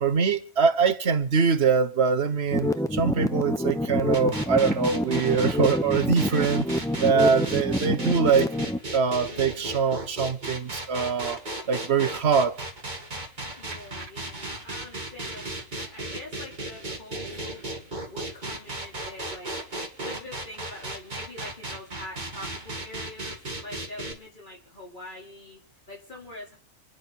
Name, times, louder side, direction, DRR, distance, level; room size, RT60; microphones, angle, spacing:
voice 1, 0.0-6.7 7.0-8.5 8.9-11.4 11.7-12.6, right 5 dB, 45° right, 1.3 m, -23 dB
sound 1, 2.5-8.8, left 1 dB, 5° left, 0.5 m, -27 dB
sound 2, 4.1-24.1, right 2 dB, 30° right, 2.4 m, -35 dB
voice 2, 13.6-17.6 18.1-19.6 20.0-26.6, left 1 dB, 30° left, 4.6 m, -44 dB
29.5 x 9.9 x 4.4 m
omnidirectional pair, 1.6 m